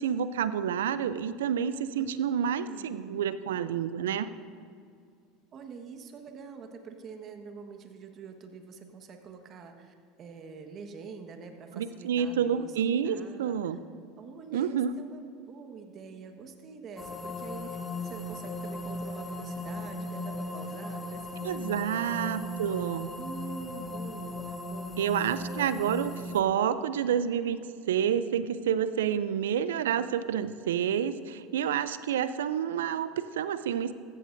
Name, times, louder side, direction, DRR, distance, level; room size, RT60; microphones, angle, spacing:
voice 1, 0.0-4.3 11.7-13.8 14.5-14.9 21.4-23.2 25.0-27.6 27.9-33.9, right 8 dB, 80° right, 14 dB, 0.5 m, -29 dB
voice 2, 2.0-3.3 5.5-12.8 13.0-13.8 14.2-22.7 23.2-25.6, right 5 dB, 45° right, 5 dB, 1.4 m, -45 dB
sound 1, 17.0-26.4, left 2 dB, 15° left, 1.2 m, -37 dB
15.5 x 14.5 x 2.6 m, 2.3 s
hypercardioid pair, 80°, 0 cm